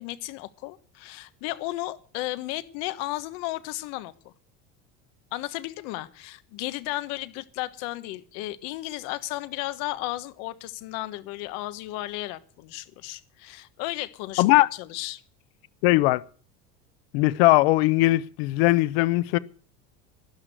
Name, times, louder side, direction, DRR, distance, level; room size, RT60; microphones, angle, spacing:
voice 1, 0.0-4.3 5.3-15.2, left 17 dB, 60° left, 1.3 m, -34 dB
voice 2, 14.4-14.7 15.8-16.2 17.1-19.4, left 19 dB, 80° left, 0.8 m, -20 dB
12.5 x 11.0 x 7.9 m
cardioid pair, 170°, 30 cm